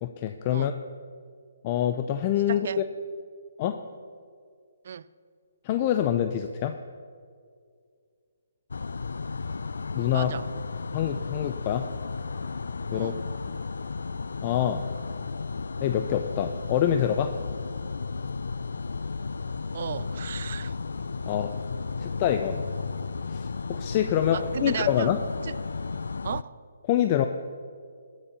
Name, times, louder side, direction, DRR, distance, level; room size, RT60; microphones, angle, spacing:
voice 1, 0.0-0.7 1.6-2.8 3.6-3.8 5.6-6.8 9.9-10.3 10.9-11.9 12.9-13.1 14.4-14.9 15.8-17.3 21.3-21.5 22.0-22.6 23.3-25.2 26.9-27.3, left 10 dB, 25° left, 0.5 m, -26 dB
voice 2, 2.5-2.8 4.8-5.1 10.1-10.5 12.9-13.2 19.7-20.7 24.3-25.1 25.4-25.5 26.2-26.6, right 8 dB, 50° right, 0.4 m, -34 dB
sound 1, 8.7-26.4, left 4 dB, 80° left, 0.4 m, -34 dB
19.5 x 7.3 x 6.7 m
hypercardioid pair, 165°, 0 cm